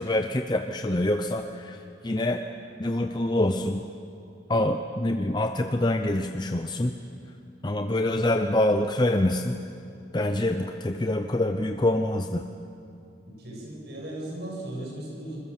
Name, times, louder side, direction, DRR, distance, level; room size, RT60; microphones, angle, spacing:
voice 1, 0.0-1.8 2.0-2.4 2.8-3.8 4.5-6.9 7.6-9.6 10.1-12.5, left 1 dB, 20° left, 6 dB, 0.7 m, -25 dB
voice 2, 13.3-15.4, right 1 dB, 60° right, -2 dB, 7.7 m, -37 dB
26.0 x 21.5 x 7.4 m, 2.5 s
head